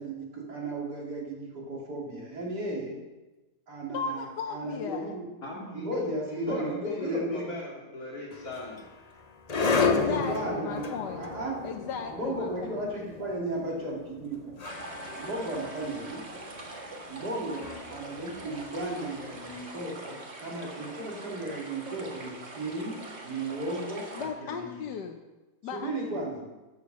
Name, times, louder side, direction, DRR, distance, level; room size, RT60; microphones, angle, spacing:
voice 1, 0.0-3.0 3.7-4.2 4.5-5.3 5.7-7.5 10.1-11.6 12.1-14.6 15.2-16.3 17.1-24.8 25.7-26.5, right 1 dB, 75° right, -3 dB, 3.5 m, -35 dB
voice 2, 3.9-5.2 9.8-11.3 11.6-12.8 24.1-25.2 25.6-26.2, left 6 dB, 85° left, 3 dB, 1.4 m, -36 dB
voice 3, 5.4-8.8, left 2 dB, 60° left, -5 dB, 3.2 m, -38 dB
sound 1, 8.3-19.4, left 4 dB, 35° left, 0.7 m, -33 dB
sound 2, 14.6-24.3, right 2 dB, 40° right, 1.9 m, -43 dB
13.5 x 7.2 x 6.3 m, 1.1 s
omnidirectional pair, 1.8 m